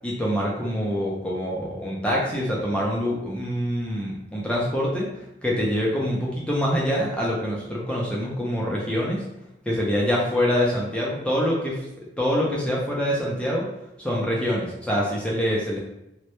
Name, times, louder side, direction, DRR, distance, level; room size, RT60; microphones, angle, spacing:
voice 1, 0.0-5.1 5.4-9.2 9.7-11.8 12.2-13.7 14.0-15.8, equal, 5° left, -4 dB, 0.3 m, -25 dB
2.1 x 2.0 x 2.9 m, 0.85 s
head